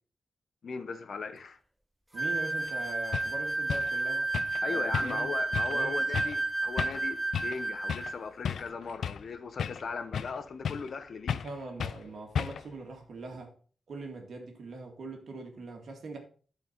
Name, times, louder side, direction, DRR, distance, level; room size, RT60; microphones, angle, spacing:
voice 1, 0.6-1.6 4.6-11.4, left 5 dB, 50° left, 0.8 m, -38 dB
voice 2, 2.1-4.3 4.7-5.3 5.7-6.0 11.4-13.5 13.9-16.2, right 3 dB, 60° right, 2.1 m, -42 dB
sound 1, 2.2-8.2, right 2 dB, 5° right, 0.8 m, -31 dB
sound 2, 2.7-2.8 3.1-3.3 3.7-3.9 4.3-4.6 4.9-5.3 5.5-5.8 6.1-6.4 6.8-7.1 7.3-7.6 7.9-8.1 8.4-9.3 9.6-10.4 10.6-11.0 11.3-11.5 11.8-12.0 12.4-12.7, left 7 dB, 75° left, 0.4 m, -34 dB
12.0 x 4.6 x 4.4 m
wide cardioid pair, 145°, 0 cm